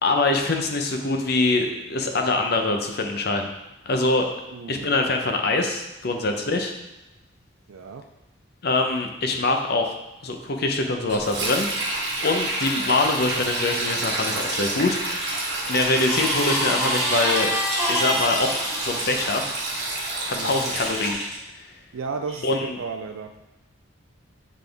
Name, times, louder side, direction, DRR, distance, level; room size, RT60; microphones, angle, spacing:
voice 1, 0.0-3.5 3.9-4.3 4.7-6.7 8.6-10.0 10.2-11.7 12.2-15.3 15.7-17.5 17.9-18.5 18.8-19.4 20.2-21.2 21.6-21.7 22.4-22.8, left 2 dB, 50° left, 4 dB, 0.7 m, -24 dB
voice 2, 4.5-5.0 6.1-6.3 7.7-8.1 20.3-20.7 21.9-23.4, right 4 dB, 85° right, 5 dB, 0.4 m, -34 dB
Sink (filling or washing), 11.1-21.1, right 2 dB, 55° right, 1.2 m, -29 dB
sound 1, 15.2-19.5 20.3-21.4 22.3-22.5, equal, ahead, 1.4 m, -27 dB
7.3 x 3.8 x 3.4 m, 0.99 s
head